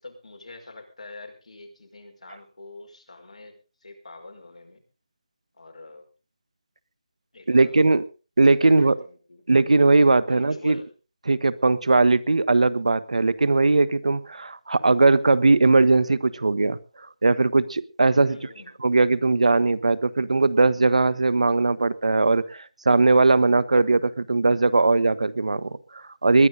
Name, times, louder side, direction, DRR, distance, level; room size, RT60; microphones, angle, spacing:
voice 1, 0.0-4.8 5.6-6.0 7.3-7.8 8.6-9.4 10.3-10.9 18.3-18.7, left 2 dB, 85° left, 3 dB, 5.4 m, -44 dB
voice 2, 7.5-8.0 8.4-8.9 9.5-10.8 11.3-16.8 17.2-18.4 18.8-26.5, right 3 dB, 75° right, 13 dB, 1.1 m, -19 dB
21.0 x 11.5 x 4.0 m, 0.33 s
figure-of-eight pair, 165°, 4 cm